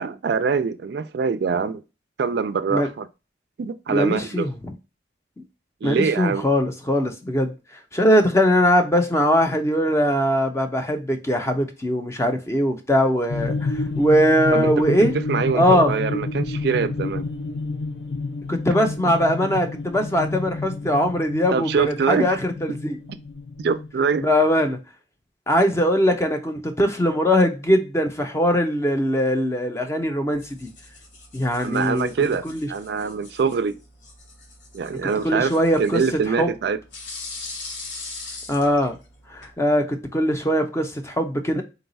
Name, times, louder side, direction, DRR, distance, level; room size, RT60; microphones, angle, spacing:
voice 1, 0.0-1.8 2.2-3.1 3.6-4.5 5.8-6.5 14.5-14.7 15.3-17.3 21.5-22.4 23.6-24.3 31.6-33.8 34.7-35.5 35.8-36.8, right 5 dB, 60° right, 0.3 m, -24 dB
voice 2, 3.9-4.7 5.8-7.5 7.9-15.1 15.5-15.9 18.5-23.0 24.2-24.8 25.5-30.7 31.3-32.1 32.4-32.7 35.2-36.0 36.4-36.5 38.5-39.0 39.3-41.6, equal, 15° left, 0.5 m, -21 dB
sound 1, 13.3-24.4, left 3 dB, 65° left, 0.5 m, -29 dB
sound 2, 30.3-39.5, left 3 dB, 85° left, 1.1 m, -41 dB
3.9 x 2.3 x 4.0 m
head